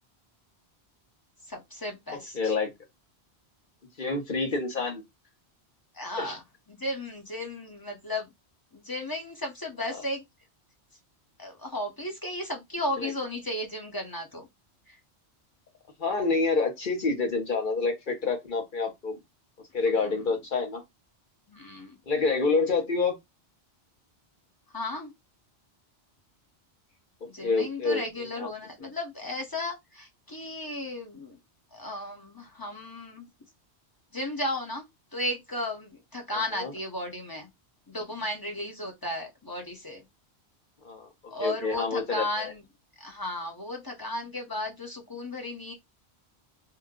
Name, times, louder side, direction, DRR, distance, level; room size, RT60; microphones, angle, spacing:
voice 1, 1.5-2.5 5.9-6.4 6.7-8.3 8.7-10.2 11.4-14.5 19.9-20.2 21.5-21.9 24.7-25.1 27.3-31.4 31.7-33.3 34.1-34.8 35.1-37.5 37.9-40.0 41.3-42.6 43.0-45.7, left 1 dB, 20° left, 0.8 m, -34 dB
voice 2, 2.1-2.7 4.0-5.0 6.2-6.4 13.0-13.1 16.0-19.2 19.7-20.8 22.1-23.2 27.4-28.5 36.3-36.7 40.8-41.1 41.4-42.5, left 4 dB, 50° left, 1.1 m, -28 dB
2.9 x 2.2 x 3.6 m
omnidirectional pair, 1.1 m